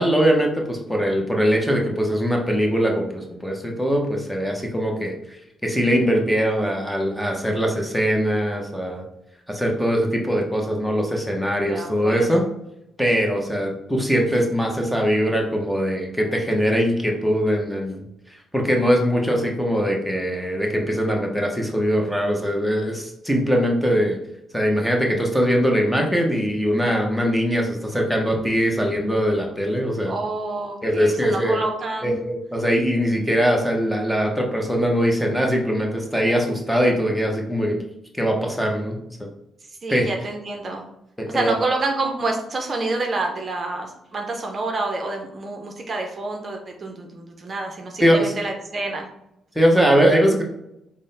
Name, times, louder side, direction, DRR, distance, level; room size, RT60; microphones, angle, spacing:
voice 1, 0.0-5.1 5.6-9.0 9.5-12.4 13.0-18.0 18.5-24.2 24.5-30.1 30.8-31.6 32.0-37.8 38.2-39.0 39.9-40.1 41.2-41.5 48.0-48.3 49.5-50.4, equal, 5° left, 1 dB, 0.7 m, -21 dB
voice 2, 11.6-12.3 30.1-32.2 39.7-40.8 41.3-49.1, right 2 dB, 40° right, 2 dB, 0.6 m, -28 dB
3.7 x 2.0 x 3.9 m, 0.84 s
cardioid pair, 90°, 0 cm